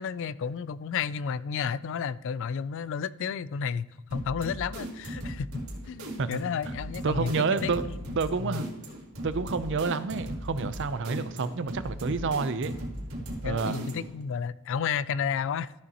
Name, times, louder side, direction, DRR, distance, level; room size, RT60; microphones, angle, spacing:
voice 1, 0.0-8.6 13.4-15.7, left 7 dB, 60° left, 18 dB, 0.3 m, -32 dB
sound 1, 4.1-14.2, right 1 dB, 75° right, 2.0 m, -38 dB
voice 2, 7.0-7.8 8.2-8.6 9.2-12.8 13.4-13.8, right 4 dB, 55° right, 13 dB, 0.5 m, -29 dB
12.5 x 6.9 x 2.9 m, 1.0 s
head